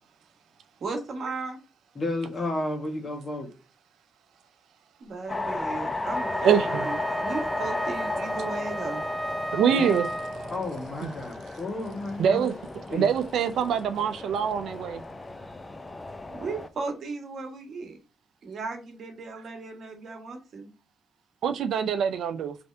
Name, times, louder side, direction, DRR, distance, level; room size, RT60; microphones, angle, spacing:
voice 1, 0.8-1.6 5.0-9.0 16.3-18.0 18.4-20.7, right 4 dB, 60° right, 1.3 m, -36 dB
voice 2, 1.9-3.5 9.7-9.9 10.5-12.5 12.9-13.1, left 2 dB, 40° left, 1.3 m, -32 dB
sound 1, 5.3-16.7, left 2 dB, 25° left, 0.5 m, -34 dB
Wind instrument woodwind instrument, 6.1-10.7, right 1 dB, 25° right, 0.7 m, -34 dB
voice 3, 6.4-6.9 9.5-10.1 11.0-11.1 12.2-12.5 12.9-15.0 21.4-22.6, right 8 dB, 80° right, 0.4 m, -24 dB
3.3 x 2.7 x 3.2 m
cardioid pair, 65°, 0 cm